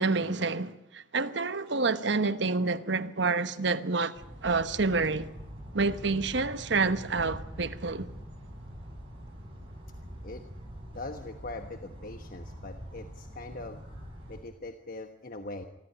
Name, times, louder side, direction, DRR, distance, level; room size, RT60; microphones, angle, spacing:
voice 1, 0.0-5.3 5.7-8.1, right 3 dB, 65° right, 1.1 m, -28 dB
sound 1, 4.2-14.4, equal, 30° right, 7.8 m, -44 dB
voice 2, 10.9-13.8 14.3-15.6, left 2 dB, 45° left, 1.2 m, -41 dB
25.0 x 14.0 x 9.9 m
head